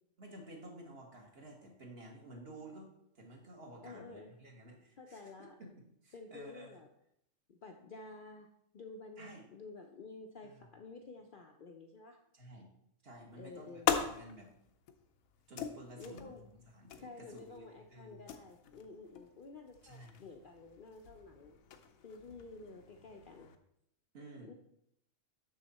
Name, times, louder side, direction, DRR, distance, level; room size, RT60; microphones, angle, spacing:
voice 1, 0.2-5.7 6.0-6.8 9.2-9.4 10.4-10.7 12.3-12.7 13.0-14.5 15.5-18.3 19.8-20.2 24.1-24.5, right 1 dB, 50° right, 1 dB, 1.5 m, -53 dB
voice 2, 3.8-4.3 5.0-5.6 6.1-6.9 7.5-8.5 8.7-12.2 13.4-13.9 16.0-16.4 17.0-21.6 22.0-23.5 24.4-24.5, left 3 dB, 55° left, 3 dB, 0.6 m, -51 dB
sound 1, 13.1-23.6, left 8 dB, 85° left, 1.1 m, -42 dB
6.5 x 6.5 x 4.1 m, 0.75 s
omnidirectional pair, 1.4 m